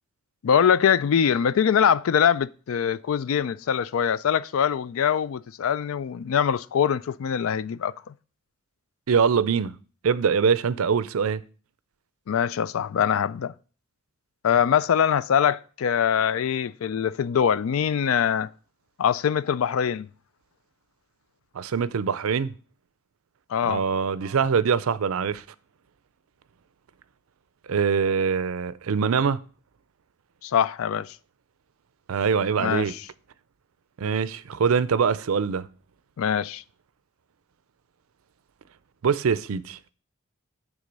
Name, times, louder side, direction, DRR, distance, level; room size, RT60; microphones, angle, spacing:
voice 1, 0.4-7.9 12.3-13.5 14.4-18.5 19.0-20.1 23.5-23.8 30.4-31.1 32.6-33.0 36.2-36.6, left 8 dB, 70° left, 0.4 m, -23 dB
voice 2, 9.1-9.7 10.0-11.4 21.5-22.5 23.6-25.4 27.7-29.4 32.1-32.9 34.0-35.7 39.0-39.9, right 6 dB, 80° right, 0.5 m, -23 dB
9.8 x 3.7 x 5.2 m
head